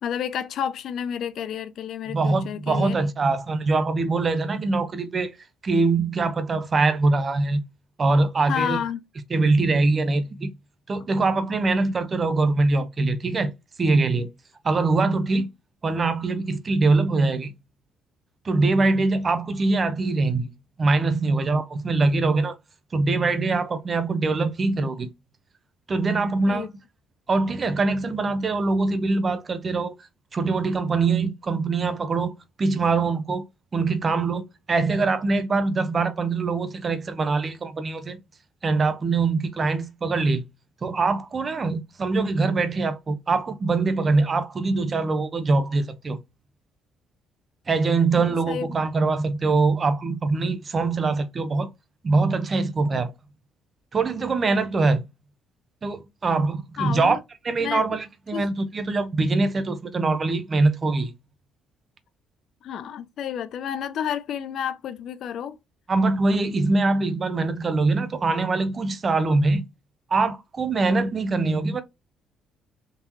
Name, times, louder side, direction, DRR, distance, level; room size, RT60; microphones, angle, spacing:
voice 1, 0.0-3.0 8.5-9.0 26.5-26.7 48.2-48.7 56.8-57.2 57.6-57.8 58.3-58.4 62.6-65.6, left 8 dB, 65° left, 0.5 m, -30 dB
voice 2, 2.1-5.4 5.6-7.6 8.0-8.8 9.3-10.5 10.9-13.5 13.8-14.3 14.6-15.5 15.8-17.5 18.4-20.5 20.8-22.5 22.9-25.1 25.9-26.7 27.3-29.9 30.3-33.4 33.7-38.2 38.6-40.5 40.8-46.2 47.7-51.7 52.0-53.1 53.9-55.0 55.8-57.2 57.4-61.1 65.9-69.6 70.1-71.8, right 3 dB, 35° right, 0.7 m, -23 dB
3.7 x 2.7 x 3.0 m
cardioid pair, 95°, 0 cm